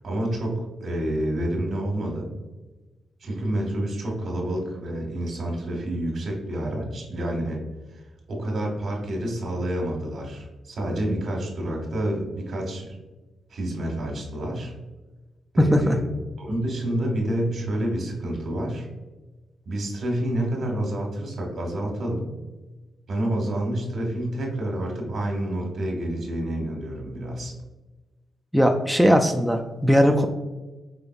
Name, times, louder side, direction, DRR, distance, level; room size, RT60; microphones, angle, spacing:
voice 1, 0.0-2.3 3.2-7.6 7.9-8.0 8.3-12.9 13.5-14.7 15.5-18.9 19.7-22.3 23.1-27.5, right 1 dB, 65° right, 0 dB, 1.3 m, -28 dB
voice 2, 15.6-16.0 28.5-30.2, equal, ahead, 2 dB, 0.3 m, -19 dB
5.1 x 3.7 x 2.3 m, 1.2 s
cardioid pair, 95°, 0 cm